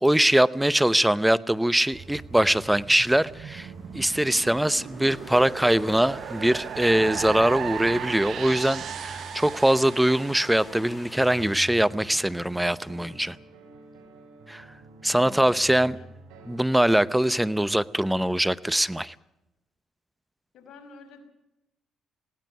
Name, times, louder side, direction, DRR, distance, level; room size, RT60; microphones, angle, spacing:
voice 1, 0.0-3.7 3.9-13.4 14.5-14.7 15.0-16.0 16.5-19.1, right 1 dB, 5° right, 18 dB, 0.8 m, -22 dB
Train, 1.8-11.6, left 2 dB, 20° left, 2.3 m, -48 dB
sound 1, 1.9-11.3, right 9 dB, 65° right, 0.8 m, -37 dB
sound 2, 1.9-16.6, right 2 dB, 85° right, 4.3 m, -49 dB
voice 2, 15.1-16.1 20.5-21.2, left 4 dB, 65° left, 5 dB, 5.9 m, -48 dB
19.5 x 17.0 x 9.3 m, 0.92 s
supercardioid pair, 65°, 0 cm